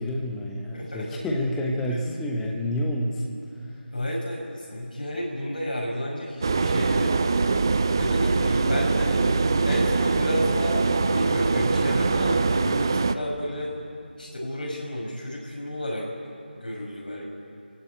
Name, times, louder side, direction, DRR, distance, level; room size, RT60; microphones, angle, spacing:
voice 1, 0.0-3.4 3.7-3.8, left 1 dB, 5° left, 0 dB, 1.0 m, -28 dB
voice 2, 0.7-1.1 3.9-7.2 8.0-9.2 9.7-13.7 14.2-16.1 16.5-17.3, equal, 60° left, -3 dB, 5.9 m, -31 dB
sound 1, 6.4-13.2, right 4 dB, 25° right, 0.6 m, -23 dB
29.5 x 17.0 x 9.3 m, 2.6 s
figure-of-eight pair, 165°, 6 cm